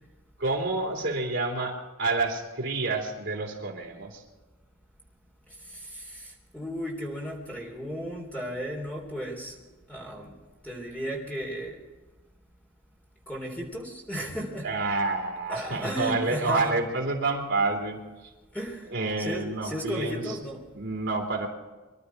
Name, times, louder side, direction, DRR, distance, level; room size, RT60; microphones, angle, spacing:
voice 1, 0.4-4.2 14.6-18.3 18.9-20.4 20.7-21.5, right 3 dB, 55° right, -1 dB, 3.3 m, -29 dB
voice 2, 5.7-9.6 9.9-10.4 10.6-11.8 13.3-14.7 15.5-16.7 18.5-18.9 19.2-20.6, equal, 5° left, -1 dB, 3.5 m, -35 dB
24.5 x 12.5 x 4.7 m, 1.2 s
head